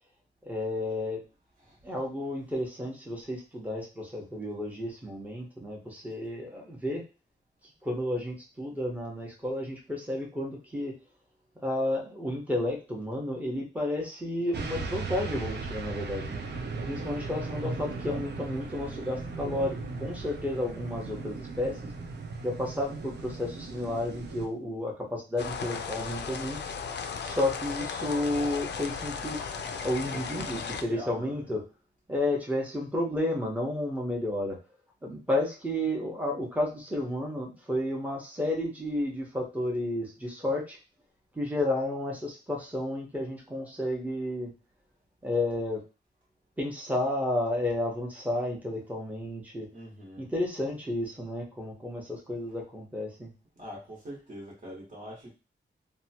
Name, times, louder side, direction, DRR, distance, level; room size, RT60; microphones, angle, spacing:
voice 1, 0.4-1.2 1.8-7.0 7.8-10.9 11.6-16.4 16.8-21.9 22.4-26.6 27.2-29.4 29.8-31.6 32.1-34.6 35.0-40.8 41.3-44.5 45.2-45.8 46.6-49.7 50.2-53.3, left 1 dB, 10° right, -1 dB, 0.9 m, -32 dB
sound 1, 14.5-24.5, right 4 dB, 60° right, 0.5 m, -37 dB
sound 2, 25.4-30.8, left 5 dB, 65° left, 0.4 m, -36 dB
voice 2, 30.1-31.5 49.7-50.3 53.6-55.3, equal, 45° right, -4 dB, 1.2 m, -44 dB
2.9 x 2.2 x 2.8 m, 0.31 s
wide cardioid pair, 130°, 19 cm